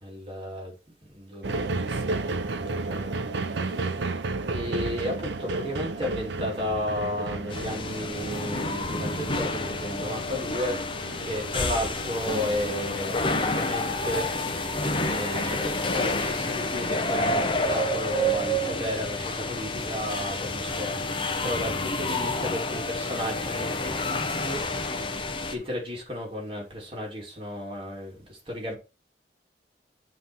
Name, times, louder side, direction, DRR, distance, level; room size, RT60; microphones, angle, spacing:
voice 1, 0.0-0.7 1.0-3.2 3.5-4.1 4.5-10.8 11.2-21.1 21.4-24.6 25.5-28.7, left 1 dB, 30° right, 2.5 m, -34 dB
sound 1, 1.4-17.0 17.6-17.7, right 3 dB, 80° right, 0.6 m, -34 dB
sound 2, 7.5-25.6, left 1 dB, 30° left, 0.7 m, -29 dB
7.5 x 3.2 x 5.4 m
head